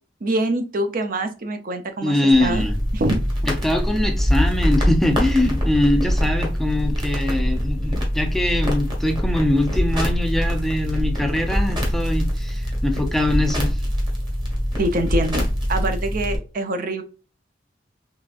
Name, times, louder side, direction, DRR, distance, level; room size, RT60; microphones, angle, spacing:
voice 1, 0.2-2.6 2.9-3.2 14.8-17.0, right 1 dB, 50° right, 0.5 m, -25 dB
voice 2, 2.0-2.8 3.4-13.8, left 1 dB, ahead, 0.4 m, -22 dB
sound 1, 2.3-16.4, equal, 25° right, 1.3 m, -23 dB
3.7 x 3.4 x 2.4 m
head